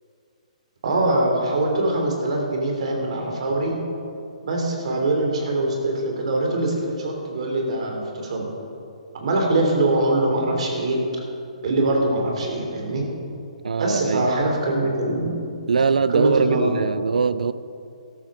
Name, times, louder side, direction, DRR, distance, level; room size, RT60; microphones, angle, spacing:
voice 1, 0.8-3.8 4.4-8.5 9.1-11.0 11.6-13.1 13.8-15.4 15.8-16.7 17.1-17.2, right 2 dB, 60° right, 1 dB, 3.4 m, -23 dB
voice 2, 13.6-14.3 15.7-17.5, right 5 dB, 90° right, 16 dB, 0.5 m, -22 dB
13.0 x 12.5 x 5.0 m, 2.5 s
hypercardioid pair, 160°, 4 cm